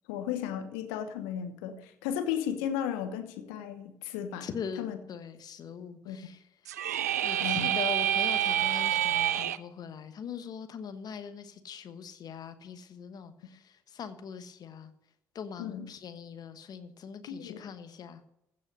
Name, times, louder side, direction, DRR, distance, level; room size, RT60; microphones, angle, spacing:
voice 1, 0.1-4.5 4.8-5.0 6.0-6.3 7.4-7.8 15.6-15.9 17.3-17.6, left 9 dB, 70° left, 9 dB, 1.1 m, -34 dB
voice 2, 4.4-6.4 7.2-14.9 15.3-18.2, left 7 dB, 50° left, 11 dB, 1.2 m, -41 dB
sound 1, 6.7-9.6, right 11 dB, 80° right, 0.4 m, -27 dB
15.5 x 5.6 x 6.5 m, 0.81 s
figure-of-eight pair, 45°, 9 cm